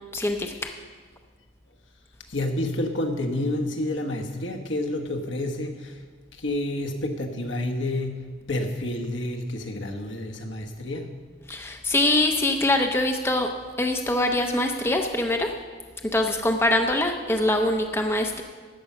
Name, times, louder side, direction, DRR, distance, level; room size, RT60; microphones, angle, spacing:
voice 1, 0.1-0.7 11.5-13.5 13.8-15.5 16.1-18.4, left 1 dB, 10° left, 4 dB, 0.6 m, -23 dB
voice 2, 2.3-6.0 6.3-11.1, left 1 dB, 75° left, 2 dB, 1.3 m, -29 dB
13.5 x 9.3 x 5.6 m, 1.5 s
head